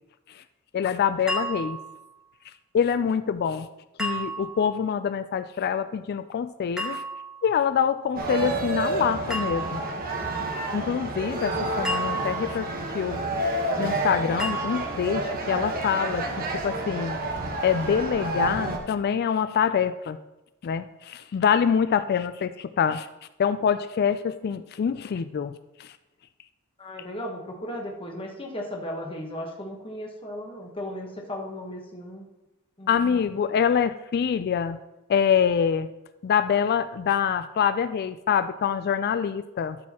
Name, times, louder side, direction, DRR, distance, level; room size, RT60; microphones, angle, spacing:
voice 1, 0.7-1.8 2.7-3.7 4.0-7.0 7.4-9.8 10.7-12.7 12.9-13.2 13.8-17.2 17.6-20.2 20.6-23.1 23.4-25.9 32.9-34.8 35.1-35.9 36.2-39.8, left 7 dB, 45° left, 13 dB, 0.3 m, -25 dB
sound 1, 1.3-2.0 4.0-4.7 6.8-7.4 9.3-10.0 11.8-12.7 14.4-15.1, right 1 dB, 5° right, 1.4 m, -32 dB
sound 2, 8.2-18.8, right 2 dB, 45° right, 1.2 m, -29 dB
voice 2, 26.8-32.3 32.8-33.2, left 1 dB, 25° left, 0 dB, 1.2 m, -36 dB
12.5 x 6.5 x 2.9 m, 0.95 s
head